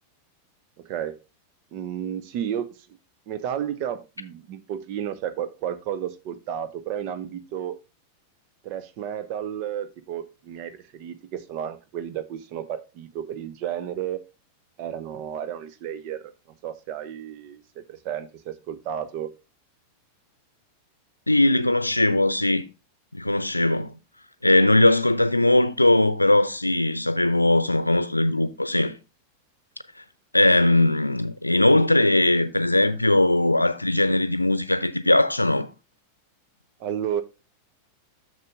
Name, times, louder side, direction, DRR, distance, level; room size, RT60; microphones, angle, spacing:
voice 1, 0.8-1.2 1.7-2.9 3.3-7.8 8.6-14.2 14.8-16.3 16.6-19.3 36.8-37.2, right 9 dB, 45° right, 0.9 m, -32 dB
voice 2, 21.3-22.6 23.1-23.9 24.4-28.9 30.3-35.7, left 1 dB, 85° left, 0.6 m, -20 dB
6.7 x 6.7 x 3.6 m
figure-of-eight pair, 90°, 0 cm